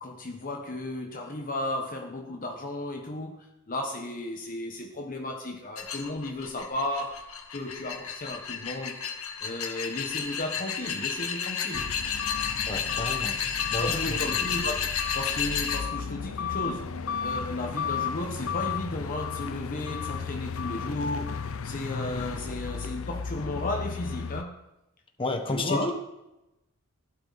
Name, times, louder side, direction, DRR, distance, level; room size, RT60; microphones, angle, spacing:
voice 1, 0.0-9.0 9.4-11.9 13.8-24.6 25.5-25.9, left 1 dB, 40° left, 2 dB, 1.2 m, -34 dB
sound 1, 5.8-15.8, left 7 dB, 85° left, 1.7 m, -32 dB
sound 2, 11.7-24.4, left 6 dB, 70° left, 0.6 m, -34 dB
voice 2, 12.7-13.4 13.7-14.4 25.2-25.9, left 2 dB, 25° left, 4 dB, 1.4 m, -31 dB
16.0 x 11.5 x 4.1 m, 0.91 s
head